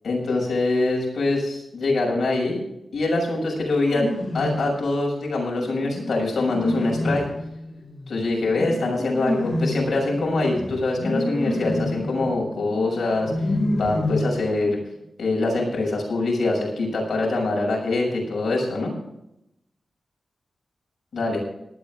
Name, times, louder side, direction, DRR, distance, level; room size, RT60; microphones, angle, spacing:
voice 1, 0.0-2.6 2.9-4.1 4.3-7.3 8.1-14.8 15.2-18.9 21.1-21.4, left 2 dB, 60° left, -2 dB, 6.9 m, -24 dB
sound 1, 3.8-4.7 5.5-14.6, left 1 dB, 40° left, 5.5 m, -28 dB
18.5 x 12.5 x 3.6 m, 0.84 s
wide cardioid pair, 175°, 0 cm